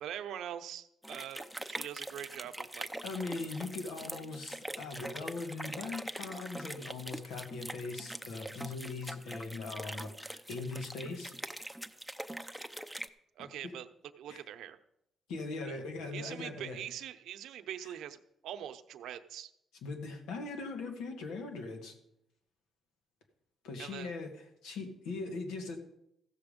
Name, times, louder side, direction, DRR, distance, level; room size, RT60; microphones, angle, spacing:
voice 1, 0.0-2.9 13.4-13.9 14.2-14.8 15.7-15.8 16.1-19.5 23.8-24.1, right 10 dB, 80° right, 9 dB, 0.7 m, -43 dB
sound 1, 1.0-13.1, right 1 dB, ahead, 0.6 m, -43 dB
voice 2, 3.0-11.3 14.3-14.4 15.3-16.8 19.8-22.0 23.6-24.3 24.6-25.8, left 3 dB, 90° left, 4 dB, 1.9 m, -40 dB
15.0 x 7.0 x 5.2 m, 0.79 s
cardioid pair, 90°, 0 cm